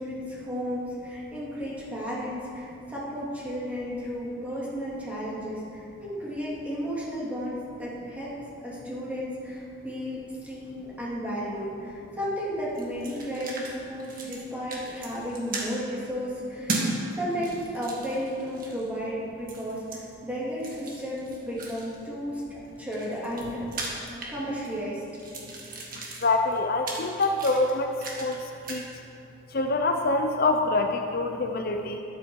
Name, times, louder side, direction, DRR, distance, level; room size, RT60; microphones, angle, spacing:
voice 1, 0.0-8.4 8.6-16.8 17.1-22.4 22.8-23.6 24.3-25.0, equal, 5° right, -7 dB, 2.7 m, -33 dB
sound 1, 12.7-13.7 14.0-14.4 14.7-15.7 16.7-16.9 17.3-18.9 19.5-20.0 20.6-22.0 22.6-24.8 25.1-28.4 28.6-28.8, right 3 dB, 45° right, 1.8 m, -36 dB
voice 2, 26.2-28.9 29.5-32.0, left 2 dB, 50° left, 5 dB, 0.6 m, -25 dB
13.5 x 11.0 x 4.6 m, 2.7 s
head